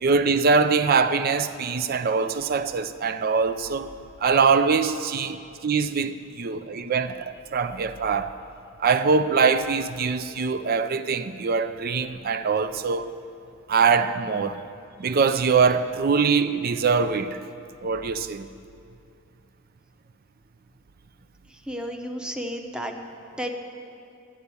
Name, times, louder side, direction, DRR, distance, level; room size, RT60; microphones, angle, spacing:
voice 1, 0.0-3.9 4.2-8.3 8.8-13.1 13.7-14.6 15.0-17.4 17.8-18.5, right 5 dB, 50° right, 0.4 m, -23 dB
voice 2, 21.7-23.0 23.4-23.5, equal, 5° right, 0.8 m, -32 dB
12.0 x 8.0 x 8.3 m
head